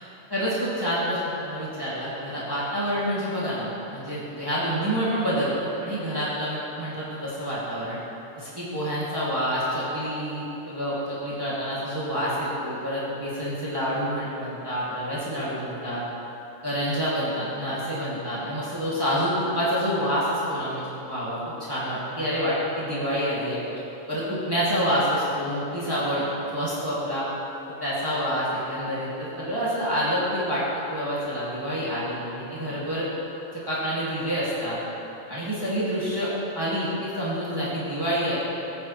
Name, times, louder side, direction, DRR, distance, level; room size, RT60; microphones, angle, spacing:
voice 1, 0.3-8.0 8.4-16.0 16.6-21.4 21.7-23.6 24.1-26.2 26.5-27.2 27.8-30.6 30.9-33.1 33.5-34.8 35.3-38.4, equal, 15° right, -9 dB, 2.3 m, -27 dB
18.5 x 10.0 x 3.2 m, 2.9 s
omnidirectional pair, 1.4 m